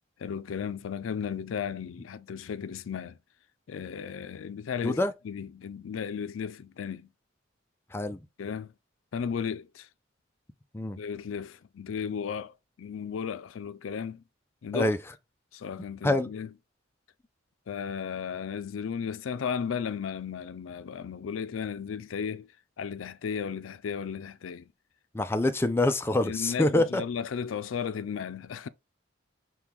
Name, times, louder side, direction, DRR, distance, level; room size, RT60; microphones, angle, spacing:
voice 1, 0.2-3.2 3.7-7.1 8.4-8.7 9.1-9.9 11.0-14.2 14.6-15.0 15.5-16.5 17.7-22.5 22.8-24.7 25.4-25.5 26.2-28.7, left 7 dB, 90° left, 0.4 m, -35 dB
voice 2, 25.1-27.0, left 1 dB, 10° left, 0.3 m, -25 dB
5.9 x 2.3 x 3.5 m
head